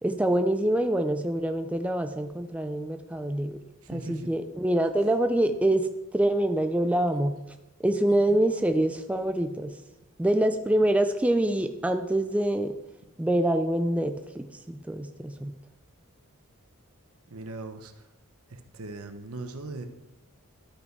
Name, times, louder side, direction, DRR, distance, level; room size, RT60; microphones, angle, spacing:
voice 1, 0.0-3.6 3.9-7.4 7.8-9.7 10.2-12.7 13.2-15.5, right 1 dB, 5° right, 7 dB, 0.4 m, -25 dB
voice 2, 3.8-4.3 8.1-8.4 17.3-17.9 18.5-19.9, right 2 dB, 80° right, 6 dB, 1.0 m, -39 dB
12.0 x 5.5 x 4.6 m, 1.0 s
head